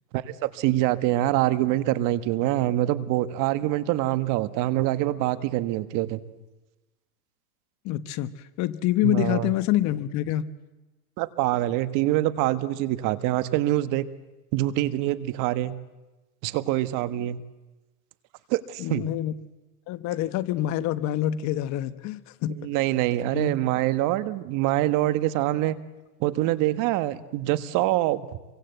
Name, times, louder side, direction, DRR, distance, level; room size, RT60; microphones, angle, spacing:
voice 1, 0.1-6.2 9.0-9.5 11.2-14.1 14.5-15.7 16.4-17.4 18.5-19.1 22.6-25.8 26.2-28.3, right 15 dB, 45° right, 13 dB, 1.4 m, -25 dB
voice 2, 7.8-8.3 8.6-10.5 18.8-19.3 19.9-22.6 23.3-23.6, left 13 dB, 40° left, 14 dB, 1.1 m, -26 dB
27.0 x 24.0 x 8.0 m, 1.1 s
supercardioid pair, 135°, 44 cm